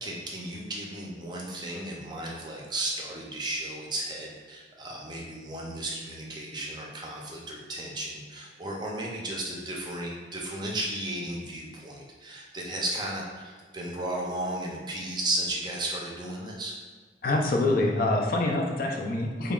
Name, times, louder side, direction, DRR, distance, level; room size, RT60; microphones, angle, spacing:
voice 1, 0.0-16.7, right 1 dB, 25° right, -2 dB, 0.5 m, -34 dB
voice 2, 17.2-19.5, left 2 dB, 50° left, 0 dB, 0.5 m, -25 dB
5.2 x 2.3 x 2.3 m, 1.5 s
head